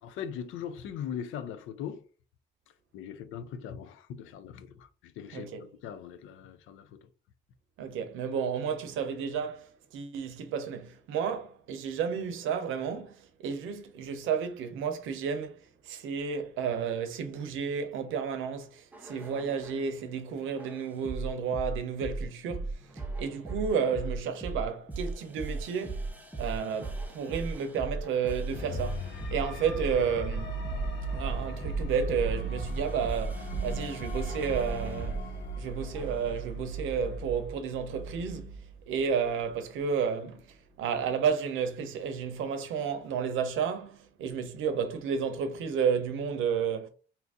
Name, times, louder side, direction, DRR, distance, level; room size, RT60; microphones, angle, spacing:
voice 1, 0.0-2.0 2.9-7.0, left 8 dB, 85° left, 0.5 m, -40 dB
voice 2, 5.3-5.7 7.8-15.6 15.8-30.6 31.1-35.2 35.6-46.9, right 6 dB, 85° right, 0.7 m, -32 dB
sound 1, 18.9-19.9 20.6-35.3 35.9-36.3, right 3 dB, 10° right, 0.7 m, -37 dB
sound 2, 28.5-39.5, right 2 dB, 60° left, 0.8 m, -37 dB
2.8 x 2.5 x 3.5 m
cardioid pair, 90°, 20 cm